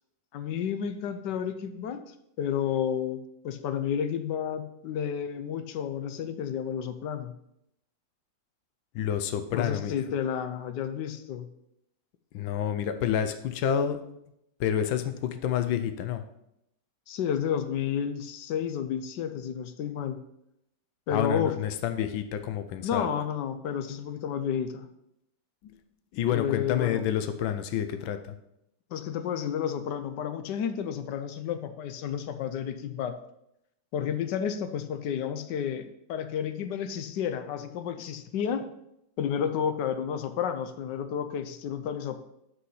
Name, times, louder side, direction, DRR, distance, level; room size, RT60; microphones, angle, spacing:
voice 1, 0.3-2.0 2.4-7.3 9.5-11.5 17.1-20.2 21.1-21.5 22.8-24.9 26.3-27.0 28.9-33.1 33.9-38.6 39.2-42.2, left 8 dB, 70° left, 9 dB, 1.2 m, -31 dB
voice 2, 8.9-9.9 12.3-14.0 14.6-16.2 21.1-23.1 25.6-25.8 26.1-28.3, left 9 dB, 90° left, 9 dB, 1.4 m, -29 dB
6.2 x 5.7 x 5.6 m, 0.79 s
omnidirectional pair, 2.1 m